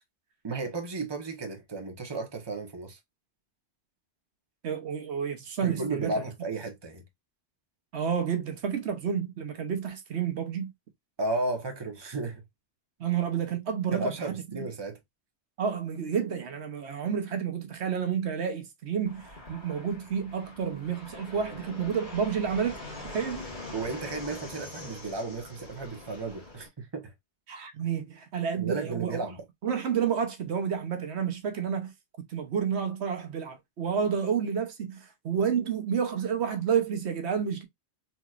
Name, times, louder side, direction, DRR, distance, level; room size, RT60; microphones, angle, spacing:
voice 1, 0.4-3.0 5.6-7.0 11.2-12.4 13.9-15.0 23.7-27.1 28.6-29.4, right 3 dB, 25° right, 1.0 m, -34 dB
voice 2, 4.6-6.2 7.9-10.7 13.0-14.7 15.6-23.5 27.5-29.2 29.6-31.9 32.3-37.6, right 7 dB, 75° right, 1.1 m, -30 dB
Fixed-wing aircraft airplane, 19.0-26.7, left 2 dB, 45° left, 1.9 m, -43 dB
4.2 x 3.0 x 2.4 m
omnidirectional pair, 1.1 m